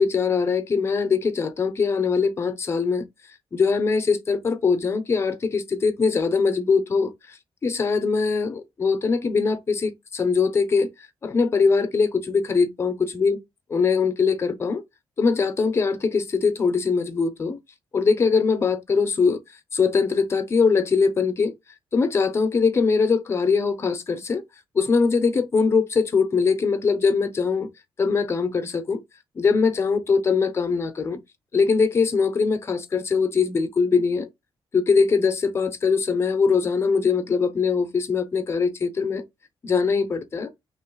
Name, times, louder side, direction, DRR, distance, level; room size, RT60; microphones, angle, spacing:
voice 1, 0.0-3.0 3.5-7.4 7.6-10.9 11.2-13.4 13.7-14.8 15.2-17.6 17.9-19.4 19.7-21.5 21.9-24.4 24.7-27.7 28.0-29.0 29.3-31.2 31.5-34.3 34.7-39.2 39.6-40.5, left 5 dB, 30° left, 0.7 m, -22 dB
3.1 x 3.0 x 4.6 m
wide cardioid pair, 160°, 10 cm